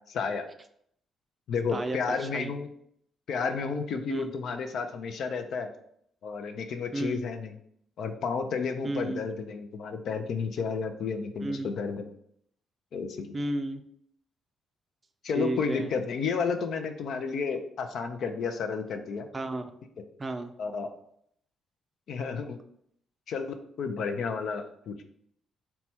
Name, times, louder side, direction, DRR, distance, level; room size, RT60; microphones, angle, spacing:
voice 1, 0.1-0.5 1.5-2.7 3.3-5.7 6.2-7.5 8.0-12.1 12.9-13.4 15.2-19.3 20.6-20.9 22.1-22.6 23.3-25.0, left 5 dB, 70° left, 6 dB, 0.5 m, -32 dB
voice 2, 1.7-2.5 4.1-4.3 6.9-7.2 8.8-9.2 11.4-11.7 13.3-13.8 15.3-15.9 19.3-19.7 20.2-20.5, right 2 dB, 30° right, 8 dB, 0.4 m, -32 dB
4.2 x 2.2 x 4.2 m, 0.70 s
cardioid pair, 90°, 0 cm